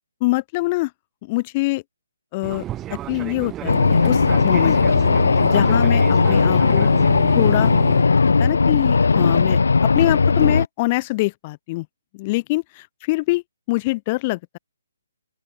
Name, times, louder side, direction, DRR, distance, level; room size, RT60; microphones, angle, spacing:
voice 1, 0.2-0.9 1.2-1.8 2.3-2.6 2.9-5.0 5.4-6.9 7.3-7.7 8.3-11.9 12.1-14.6, left 22 dB, 20° left, 1.5 m, -24 dB
Fixed-wing aircraft airplane, 2.4-8.0, right 13 dB, 10° right, 6.7 m, -32 dB
sound 1, 3.7-10.7, left 4 dB, 85° left, 0.8 m, -17 dB
open air
hypercardioid pair, 175°, 0 cm